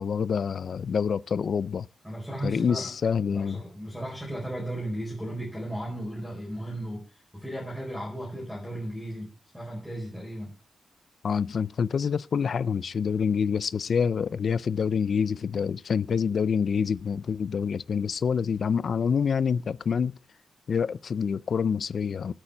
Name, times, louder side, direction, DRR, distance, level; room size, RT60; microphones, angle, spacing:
voice 1, 0.0-1.9 2.4-3.6 11.2-20.2 20.7-22.3, left 6 dB, 55° left, 0.4 m, -27 dB
voice 2, 2.0-2.9 3.3-7.1 7.4-9.3 9.5-10.5, right 1 dB, ahead, 4.5 m, -35 dB
9.0 x 8.8 x 6.7 m
wide cardioid pair, 145°, 0 cm